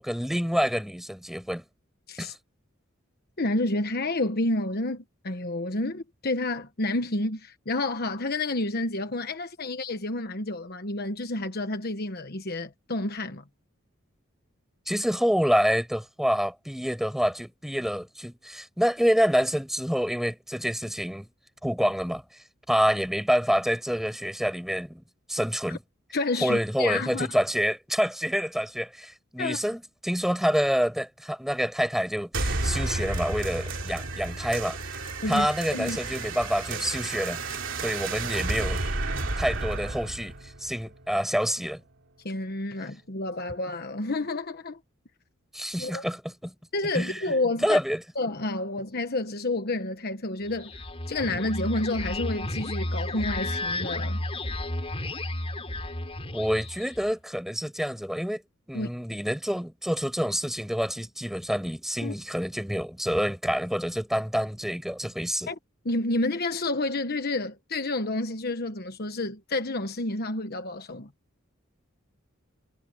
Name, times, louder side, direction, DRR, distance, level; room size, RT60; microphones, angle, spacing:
voice 1, 0.0-1.6 2.2-2.3 14.9-21.3 21.6-22.2 22.7-25.0 25.3-25.8 26.4-35.0 35.3-37.4 37.8-38.8 39.4-40.3 40.6-41.8 45.5-46.5 46.9-47.2 47.6-48.0 56.3-58.4 58.7-65.5, equal, ahead, 7.6 m, -27 dB
voice 2, 3.4-13.4 25.7-25.8 26.1-27.3 29.4-29.6 35.2-35.5 35.7-36.0 42.2-44.8 45.8-46.0 46.7-47.8 48.2-54.2 58.7-58.9 62.0-62.1 65.5-65.6 65.8-71.1, left 2 dB, 50° left, 1.3 m, -29 dB
sound 1, 32.3-41.3, right 2 dB, 70° right, 3.3 m, -32 dB
sound 2, 50.5-57.1, left 1 dB, 30° left, 3.5 m, -32 dB
head